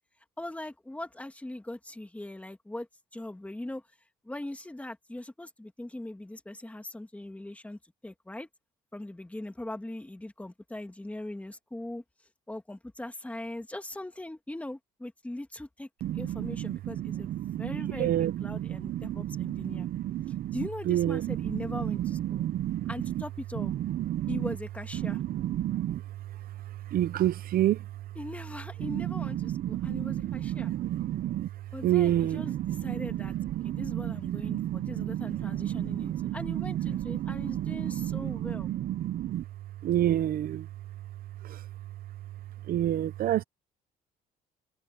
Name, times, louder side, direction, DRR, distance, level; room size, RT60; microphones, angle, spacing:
voice 1, 0.4-2.9 3.1-3.8 4.2-8.5 8.9-12.0 12.5-15.9 16.1-19.9 20.5-22.4 22.9-23.7 24.3-25.2 28.2-30.7 31.7-33.4 33.6-38.7, left 1 dB, 10° left, 2.6 m, -40 dB
voice 2, 16.0-23.2 23.6-24.5 24.9-26.0 26.7-27.9 28.8-31.5 31.8-39.4 39.8-40.7 41.4-41.6 42.7-43.4, right 12 dB, 60° right, 0.8 m, -30 dB
cardioid pair, 110°, 17 cm